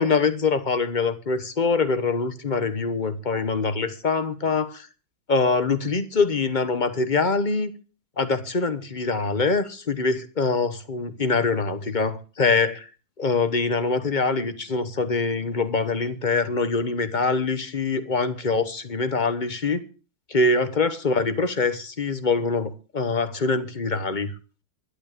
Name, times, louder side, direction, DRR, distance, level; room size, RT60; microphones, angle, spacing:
voice 1, 0.0-4.9 5.3-7.7 8.2-12.9 13.2-19.8 20.3-24.3, left 4 dB, 30° left, 1.3 m, -24 dB
11.5 x 11.5 x 6.8 m
omnidirectional pair, 1.7 m